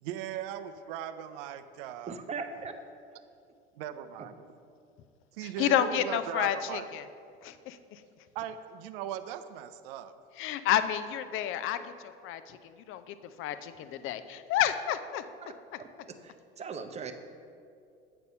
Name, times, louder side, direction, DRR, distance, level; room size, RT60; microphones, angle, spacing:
voice 1, 0.0-2.2 3.8-4.4 5.3-6.9 8.3-10.1, right 10 dB, 65° right, 11 dB, 0.5 m, -39 dB
voice 2, 2.1-2.8 4.2-4.3 15.4-15.5 15.8-15.9 16.2-17.1, right 5 dB, 20° right, 7 dB, 0.6 m, -39 dB
voice 3, 5.6-7.0 7.4-8.0 10.4-12.6 12.9-15.2, left 11 dB, 45° left, 12 dB, 0.5 m, -30 dB
8.0 x 4.3 x 5.3 m, 2.4 s
hypercardioid pair, 75°, 29 cm